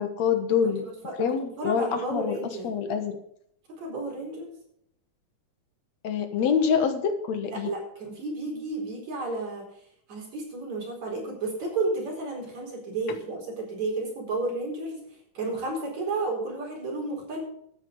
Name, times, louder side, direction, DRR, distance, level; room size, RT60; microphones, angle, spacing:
voice 1, 0.0-0.8 1.2-2.4 2.6-3.2 6.0-7.7, left 7 dB, 70° left, 8 dB, 2.4 m, -26 dB
voice 2, 0.6-2.7 3.8-4.6 7.4-9.7 10.1-15.0 15.4-17.4, right 2 dB, 65° right, 0 dB, 5.8 m, -32 dB
12.5 x 9.4 x 5.4 m, 0.69 s
omnidirectional pair, 3.3 m